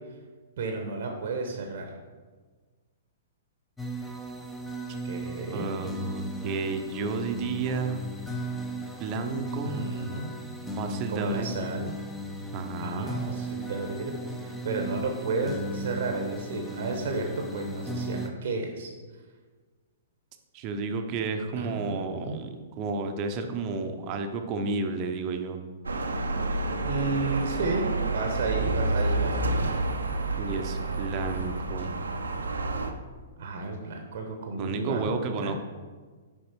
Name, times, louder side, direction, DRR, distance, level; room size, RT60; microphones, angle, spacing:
voice 1, 0.6-2.0 5.0-5.7 9.6-10.3 11.1-12.0 12.8-14.1 14.4-18.9 21.6-22.4 26.8-29.7 33.4-35.5, right 3 dB, 55° right, 3 dB, 1.0 m, -32 dB
sound 1, 3.8-18.3, right 1 dB, 5° left, 0.8 m, -36 dB
voice 2, 5.5-8.1 9.0-9.8 10.8-11.6 12.5-13.1 20.5-25.6 30.4-32.0 34.6-35.5, right 4 dB, 35° right, 6 dB, 0.8 m, -31 dB
sound 2, 25.8-32.9, right 2 dB, 75° right, 0.7 m, -29 dB
7.2 x 5.0 x 4.6 m, 1.4 s
figure-of-eight pair, 110°, 0 cm